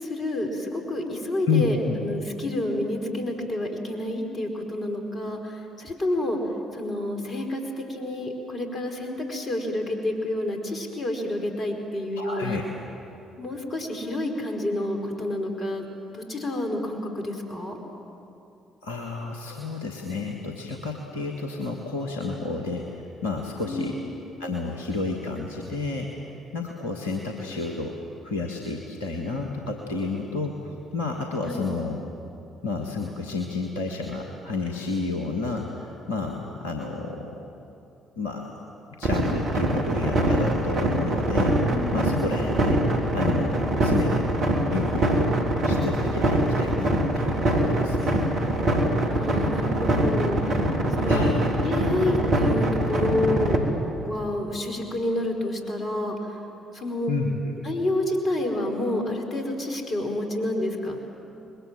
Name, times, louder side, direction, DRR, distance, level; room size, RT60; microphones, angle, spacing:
voice 1, 0.0-6.4 6.7-12.6 13.4-15.8 16.1-17.8 23.6-23.9 31.4-31.7 41.7-42.3 49.1-50.6 50.9-51.2 51.6-53.6 54.0-56.4 56.7-57.1 57.6-61.1, left 1 dB, 40° left, 3 dB, 4.8 m, -29 dB
voice 2, 1.5-2.0 12.2-12.6 18.8-23.9 24.4-26.1 26.5-28.0 28.2-32.0 32.6-37.5 38.2-38.5 39.0-42.8 43.1-44.2 44.7-48.2 51.1-51.5 57.1-57.5, left 3 dB, 80° left, 1 dB, 1.6 m, -30 dB
sound 1, 39.0-53.6, right 1 dB, 55° right, 3.5 m, -23 dB
27.0 x 21.5 x 7.7 m, 2.7 s
figure-of-eight pair, 45°, 0 cm